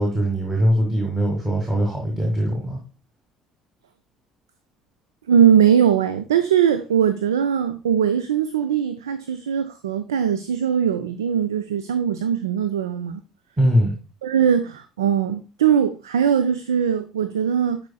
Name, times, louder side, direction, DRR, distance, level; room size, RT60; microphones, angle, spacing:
voice 1, 0.0-2.8 13.6-13.9, equal, 15° right, 1.7 m, -21 dB
voice 2, 5.3-13.2 14.2-17.8, right 8 dB, 75° right, 0.4 m, -20 dB
10.5 x 4.4 x 2.2 m
figure-of-eight pair, 55°, 2 cm